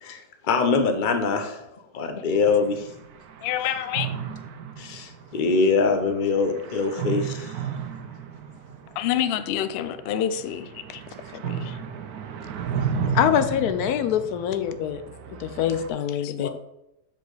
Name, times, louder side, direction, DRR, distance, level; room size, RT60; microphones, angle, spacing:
voice 1, 0.0-1.6 1.9-2.9 4.8-7.6 16.4-16.5, left 4 dB, 40° left, 6 dB, 0.8 m, -23 dB
sound 1, 2.4-15.9, right 7 dB, 85° right, 1.2 m, -34 dB
voice 2, 3.4-4.1 9.0-10.7 11.3-11.8 16.2-16.3, left 10 dB, 70° left, 11 dB, 0.6 m, -27 dB
voice 3, 13.1-15.0 15.3-16.5, left 9 dB, 90° left, 10 dB, 1.2 m, -24 dB
7.2 x 5.0 x 3.9 m, 0.87 s
omnidirectional pair, 1.6 m